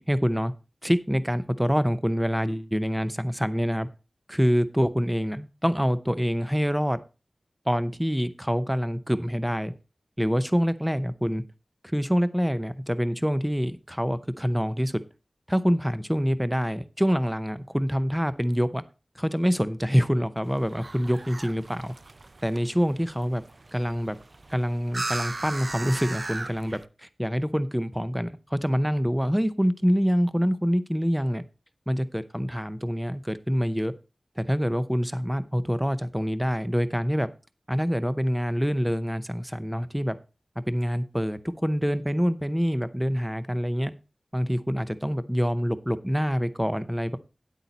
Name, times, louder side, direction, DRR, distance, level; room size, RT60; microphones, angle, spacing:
voice 1, 0.1-0.5 0.8-3.9 4.3-7.0 7.7-9.7 10.2-11.4 11.8-15.0 15.5-18.8 19.2-21.9 22.4-23.4 23.7-24.1 24.5-31.4 31.9-33.9 34.4-37.3 37.7-40.2 40.7-43.9 44.3-47.2, equal, 5° right, 13 dB, 0.7 m, -26 dB
sound 1, 20.4-26.9, right 2 dB, 50° right, 0.5 m, -38 dB
9.6 x 8.3 x 4.1 m, 0.32 s
wide cardioid pair, 75°, 0 cm